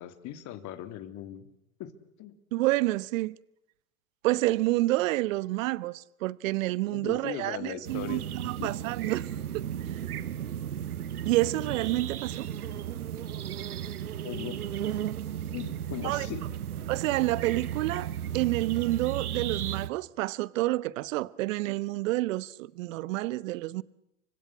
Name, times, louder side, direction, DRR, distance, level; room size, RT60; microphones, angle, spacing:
voice 1, 0.0-1.5 1.8-1.9 2.2-2.3 6.9-8.2 8.6-8.7 11.4-11.7 14.2-14.6 15.5-16.4, left 12 dB, 40° left, 3.6 m, -39 dB
voice 2, 2.5-3.4 4.2-9.3 9.5-9.7 11.2-12.5 16.0-16.3 16.9-23.8, right 18 dB, 60° right, 1.3 m, -29 dB
sound 1, 7.8-19.9, right 10 dB, 80° right, 1.4 m, -35 dB
29.5 x 25.0 x 6.4 m
hypercardioid pair, 100°, 44 cm